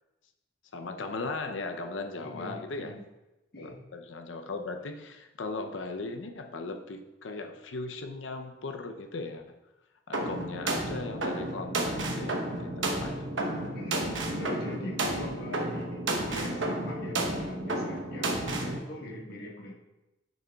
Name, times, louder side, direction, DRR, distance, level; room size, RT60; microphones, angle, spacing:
voice 1, 0.7-3.0 3.6-9.6 10.1-13.3, left 3 dB, 85° left, 6 dB, 0.6 m, -38 dB
voice 2, 2.2-3.0 3.5-3.8 13.7-19.7, left 1 dB, 55° left, -3 dB, 1.2 m, -42 dB
sound 1, 10.1-18.8, right 1 dB, 80° right, 1.0 m, -32 dB
9.4 x 6.3 x 2.3 m, 1.0 s
head